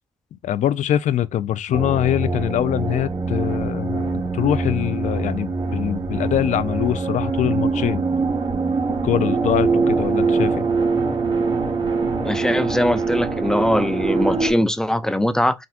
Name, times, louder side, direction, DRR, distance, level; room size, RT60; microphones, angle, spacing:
voice 1, 0.4-8.0 9.0-10.7, left 11 dB, 60° left, 0.4 m, -23 dB
sound 1, 1.7-14.5, right 4 dB, 40° right, 2.6 m, -23 dB
voice 2, 12.2-15.7, left 1 dB, 5° left, 0.6 m, -21 dB
5.8 x 2.5 x 2.4 m
hypercardioid pair, 55°, 14 cm